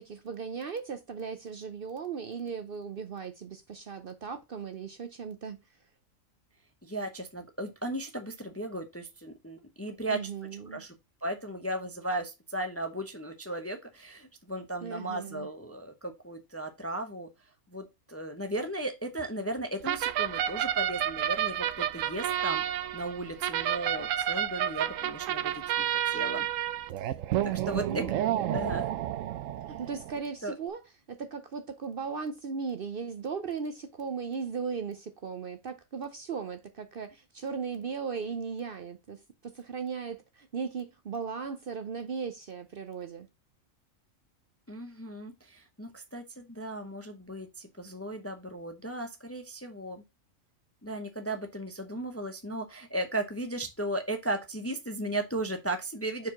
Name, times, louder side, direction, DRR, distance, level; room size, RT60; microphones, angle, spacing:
voice 1, 0.0-5.6 10.1-10.8 14.8-15.5 27.9-28.6 29.7-30.8 31.1-43.3, right 5 dB, 55° right, 0.7 m, -37 dB
voice 2, 6.8-10.2 10.7-10.9 11.2-17.3 17.7-26.5 27.5-28.0 28.5-28.9 30.4-30.5 44.7-50.0 50.8-56.3, right 1 dB, 15° left, 0.6 m, -36 dB
sound 1, 19.8-30.2, right 11 dB, 75° right, 0.9 m, -30 dB
4.7 x 4.5 x 5.9 m
omnidirectional pair, 1.4 m